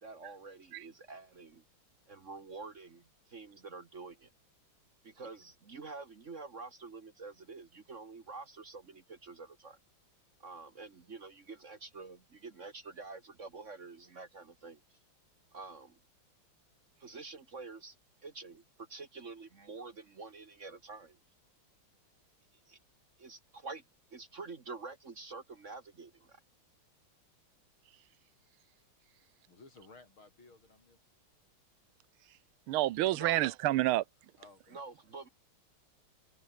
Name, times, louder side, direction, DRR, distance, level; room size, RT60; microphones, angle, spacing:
voice 1, 0.0-1.6 2.1-4.3 5.0-9.8 10.4-15.0 15.5-16.0 17.0-18.0 18.2-21.2 22.7-22.8 23.2-23.8 24.1-26.4 33.1-33.5 34.7-35.3, right 4 dB, 40° right, 1.6 m, -47 dB
voice 2, 29.5-31.0 34.4-34.8, left 3 dB, 75° left, 6.4 m, -57 dB
voice 3, 32.7-34.0, right 15 dB, 85° right, 1.6 m, -28 dB
omnidirectional pair, 2.3 m